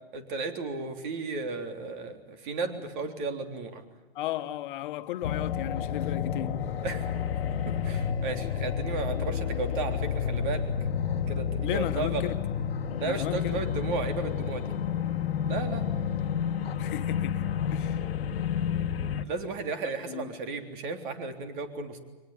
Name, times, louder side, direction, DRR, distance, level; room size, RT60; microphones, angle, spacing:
voice 1, 0.1-3.8 6.8-7.1 7.7-10.7 11.3-12.3 13.0-14.7 15.5-15.9 19.2-22.0, right 4 dB, 50° right, 3.5 m, -34 dB
voice 2, 4.1-6.6 11.6-12.4 13.0-13.6 16.8-18.0 19.8-20.3, left 13 dB, 55° left, 1.4 m, -35 dB
sound 1, 5.2-19.2, left 8 dB, 75° left, 1.3 m, -30 dB
23.0 x 20.0 x 9.8 m
hypercardioid pair, 120°, 31 cm